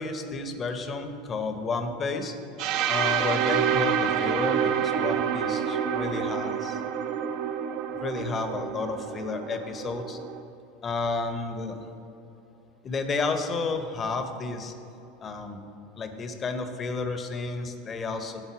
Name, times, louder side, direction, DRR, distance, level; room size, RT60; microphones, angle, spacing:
voice 1, 0.0-2.3 2.9-6.8 8.0-10.2 10.8-11.8 12.8-14.7 15.2-15.6 16.0-18.5, left 4 dB, 25° left, 7 dB, 0.6 m, -31 dB
sound 1, 2.6-10.4, right 8 dB, 50° right, 0.4 m, -28 dB
7.5 x 4.1 x 5.9 m, 2.9 s
figure-of-eight pair, 80°, 0 cm